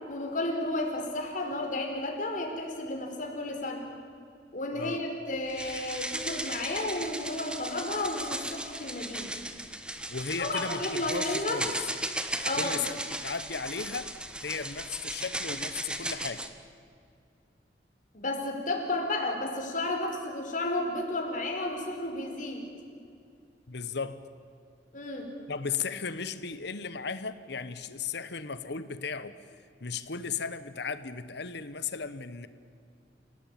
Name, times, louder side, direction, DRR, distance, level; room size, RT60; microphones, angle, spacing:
voice 1, 0.1-3.8 4.5-9.3 10.4-11.6 12.4-12.8 18.1-22.6 24.9-25.3, left 2 dB, 45° left, 2 dB, 4.7 m, -32 dB
sound 1, 5.5-16.5, right 1 dB, 5° right, 1.4 m, -36 dB
voice 2, 10.1-11.7 12.6-14.1 14.4-16.4 23.7-24.2 25.5-29.4 29.8-32.5, left 5 dB, 65° left, 13 dB, 1.1 m, -35 dB
28.5 x 18.0 x 9.2 m, 2.4 s
head